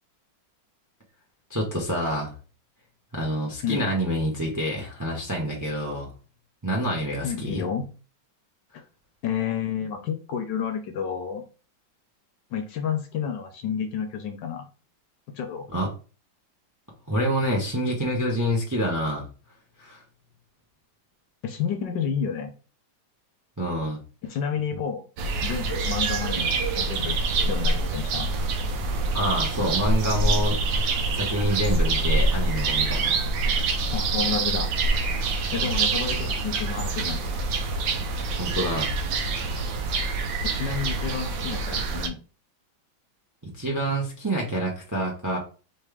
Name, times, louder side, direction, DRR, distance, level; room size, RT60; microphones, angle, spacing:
voice 1, 1.5-2.3 3.1-6.1 6.6-7.6 15.7-15.9 17.1-19.3 19.8-20.0 23.6-24.0 29.1-30.8 31.1-33.2 33.5-33.7 38.4-38.9 43.4-45.4, equal, 15° right, -1 dB, 0.6 m, -27 dB
voice 2, 7.2-7.9 9.2-11.4 12.5-14.7 15.3-15.7 21.4-22.5 24.2-25.0 25.4-27.2 27.5-28.3 33.9-34.7 35.5-37.2 40.4-42.2, left 7 dB, 70° left, 5 dB, 1.2 m, -30 dB
sound 1, 25.2-42.1, right 3 dB, 70° right, 1.4 m, -25 dB
4.2 x 3.3 x 3.4 m, 0.35 s
omnidirectional pair, 2.2 m